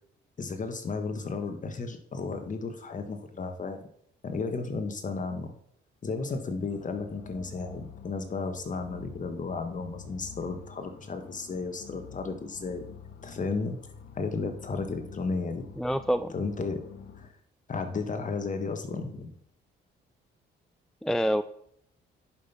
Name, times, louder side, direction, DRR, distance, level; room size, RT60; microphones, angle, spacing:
voice 1, 0.4-3.8 4.2-5.5 6.0-12.8 13.2-13.8 14.1-15.7 16.3-16.8 17.2-17.3 17.7-19.3, left 4 dB, 40° left, 6 dB, 1.6 m, -33 dB
sound 1, 6.7-17.3, left 6 dB, 70° left, 1.4 m, -48 dB
voice 2, 15.8-16.3 21.0-21.4, equal, ahead, 13 dB, 0.4 m, -26 dB
10.5 x 5.4 x 5.8 m, 0.70 s
cardioid pair, 90°, 20 cm